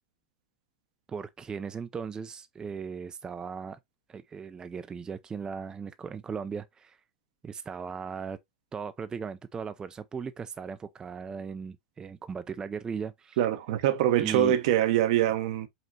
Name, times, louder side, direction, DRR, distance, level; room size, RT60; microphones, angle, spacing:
voice 1, 1.1-3.8 4.1-7.0 7.4-8.4 8.7-13.4 14.2-14.6, right 6 dB, 20° right, 0.3 m, -37 dB
voice 2, 13.4-15.7, right 12 dB, 65° right, 0.7 m, -24 dB
5.3 x 2.9 x 2.7 m
hypercardioid pair, 95°, 4 cm